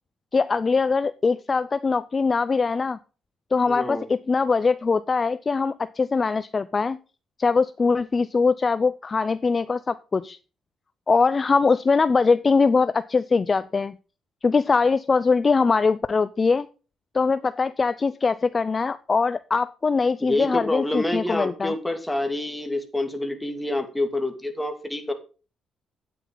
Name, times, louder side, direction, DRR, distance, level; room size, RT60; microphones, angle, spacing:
voice 1, 0.3-3.0 3.5-7.0 7.4-10.4 11.1-14.0 14.4-16.7 17.1-21.7, left 4 dB, 35° left, 14 dB, 0.4 m, -22 dB
voice 2, 3.7-4.0 20.2-25.1, left 1 dB, 5° left, 6 dB, 2.3 m, -27 dB
9.3 x 9.1 x 3.9 m, 0.34 s
cardioid pair, 90°, 0 cm